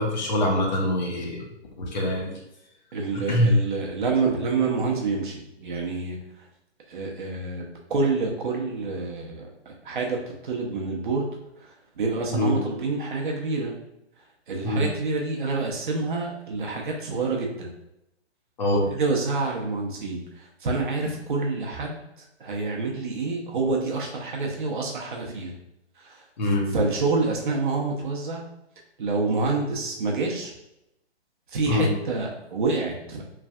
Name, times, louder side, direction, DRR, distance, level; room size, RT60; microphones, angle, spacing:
voice 1, 0.0-1.5 1.8-2.4 3.1-3.5 12.3-12.6 14.6-14.9 18.6-18.8 26.4-26.8 31.7-31.9, left 1 dB, 40° left, -1 dB, 0.7 m, -24 dB
voice 2, 2.9-6.2 6.9-11.3 11.6-13.7 14.5-17.7 18.7-22.0 22.4-25.5 26.0-26.2 26.7-28.4 29.0-30.5 31.5-33.2, right 3 dB, 50° right, -1 dB, 0.6 m, -27 dB
3.2 x 2.4 x 2.3 m, 0.85 s
figure-of-eight pair, 135°, 34 cm